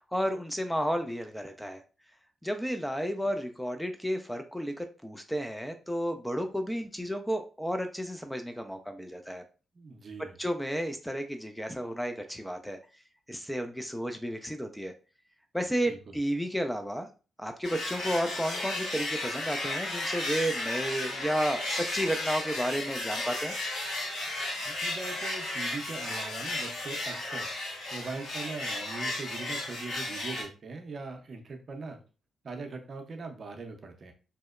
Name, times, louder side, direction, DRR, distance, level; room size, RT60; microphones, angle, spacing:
voice 1, 0.1-1.8 2.4-9.4 10.4-12.8 13.3-14.9 15.5-17.1 17.4-23.5, equal, 5° left, 6 dB, 0.4 m, -32 dB
voice 2, 9.7-10.4 15.9-16.2 24.6-27.5 27.9-32.0 32.4-34.1, right 3 dB, 50° right, 4 dB, 0.5 m, -41 dB
sound 1, 17.6-30.4, left 2 dB, 75° left, 0.7 m, -34 dB
2.7 x 2.0 x 2.3 m, 0.34 s
hypercardioid pair, 40°, 0 cm